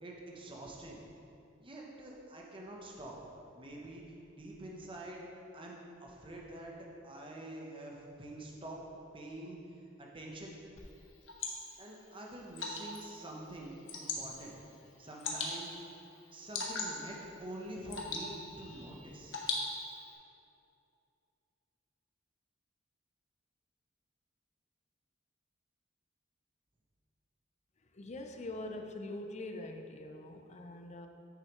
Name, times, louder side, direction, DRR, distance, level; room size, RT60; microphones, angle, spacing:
voice 1, 0.0-1.0 1.6-3.2 3.5-4.0 4.4-5.2 5.5-5.7 6.0-6.7 7.0-8.8 9.1-9.6 10.0-10.5 11.8-14.5 15.0-15.7 16.3-19.4, right 1 dB, 25° right, -2 dB, 1.0 m, -46 dB
Water / Drip, 10.8-20.1, left 3 dB, 75° left, 1.0 m, -42 dB
voice 2, 27.9-31.1, left 2 dB, 35° left, 5 dB, 0.5 m, -43 dB
8.6 x 6.4 x 3.1 m, 2.7 s
head